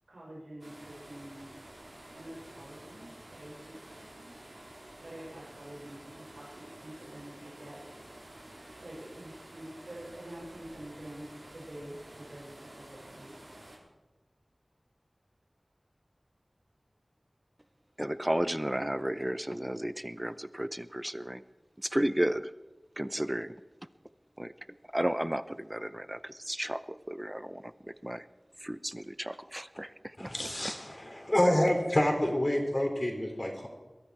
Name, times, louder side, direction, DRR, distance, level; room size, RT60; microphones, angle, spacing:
voice 1, 0.1-1.5 2.1-4.4 4.6-7.8 8.8-11.3 11.5-13.3 32.4-32.6 33.1-33.4, right 1 dB, 90° right, -5 dB, 6.1 m, -47 dB
sound 1, 0.6-13.8, right 1 dB, 70° right, 4.2 m, -50 dB
voice 2, 18.0-21.4 21.8-22.5 23.0-23.5 24.4-24.5 24.9-28.2 28.6-30.5, right 1 dB, 15° right, 14 dB, 0.7 m, -33 dB
voice 3, 30.2-33.7, left 1 dB, 40° left, 2 dB, 3.2 m, -28 dB
21.5 x 13.5 x 4.7 m, 1.1 s
wide cardioid pair, 40°, 0 cm